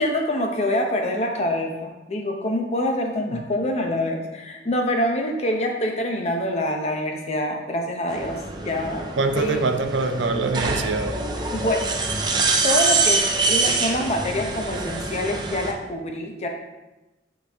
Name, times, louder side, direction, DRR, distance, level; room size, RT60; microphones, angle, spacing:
voice 1, 0.0-9.1 9.4-9.6 11.5-11.8 12.6-16.5, left 1 dB, 35° left, 2 dB, 0.8 m, -25 dB
sound 1, 8.1-15.7, right 3 dB, 25° right, 0.6 m, -25 dB
voice 2, 9.2-11.2, right 3 dB, 85° right, 8 dB, 0.5 m, -24 dB
8.7 x 4.0 x 3.5 m, 1.1 s
head